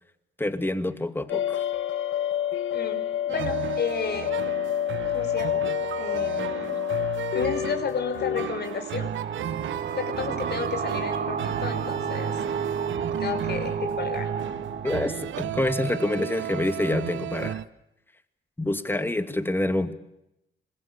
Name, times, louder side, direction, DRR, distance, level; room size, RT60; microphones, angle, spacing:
voice 1, 0.4-1.6 14.8-17.6 18.6-19.9, left 1 dB, 10° left, 10 dB, 2.4 m, -27 dB
sound 1, 1.3-8.5, left 11 dB, 80° left, 1.9 m, -28 dB
voice 2, 2.7-4.4 5.1-6.8 7.3-9.1 9.9-12.4 13.2-14.3, left 6 dB, 55° left, 7 dB, 5.7 m, -32 dB
sound 2, 3.3-17.6, right 11 dB, 75° right, 1.1 m, -34 dB
sound 3, 8.7-16.2, right 6 dB, 50° right, 5.2 m, -31 dB
26.5 x 21.0 x 8.3 m, 0.84 s
cardioid pair, 90°, 20 cm